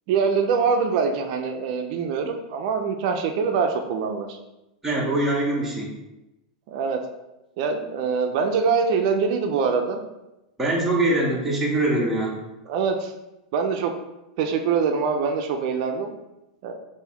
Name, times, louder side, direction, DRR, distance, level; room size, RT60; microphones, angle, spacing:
voice 1, 0.1-4.4 6.7-7.0 7.6-10.0 12.7-13.1 13.5-13.9 14.4-16.1 16.6-16.8, right 5 dB, 55° right, 5 dB, 0.4 m, -24 dB
voice 2, 4.8-5.9 10.6-12.4, right 1 dB, 10° right, -5 dB, 0.8 m, -23 dB
3.4 x 2.5 x 3.5 m, 0.94 s
supercardioid pair, 140°, 4 cm